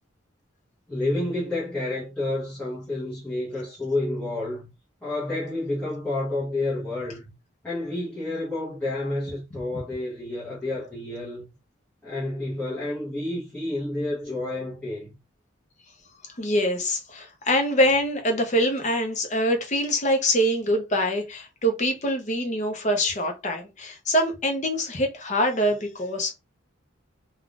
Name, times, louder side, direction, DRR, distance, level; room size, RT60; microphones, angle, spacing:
voice 1, 0.9-4.7 5.0-7.3 7.6-11.5 12.0-15.1, left 2 dB, 5° left, 0.9 m, -29 dB
voice 2, 16.4-26.3, equal, 35° left, 0.7 m, -24 dB
3.5 x 2.3 x 2.4 m
head